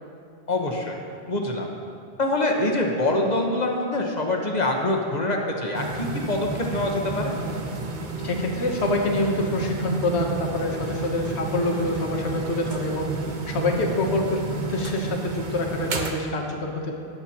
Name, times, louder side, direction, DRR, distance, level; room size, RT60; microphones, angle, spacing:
voice 1, 0.5-1.0 1.3-1.7 2.2-7.3, left 2 dB, 40° left, 0 dB, 1.2 m, -25 dB
sound 1, 5.7-16.1, right 3 dB, 50° right, 0.9 m, -31 dB
voice 2, 8.2-17.0, left 2 dB, 80° left, 1 dB, 1.3 m, -26 dB
18.5 x 8.0 x 2.9 m, 2.5 s
omnidirectional pair, 1.1 m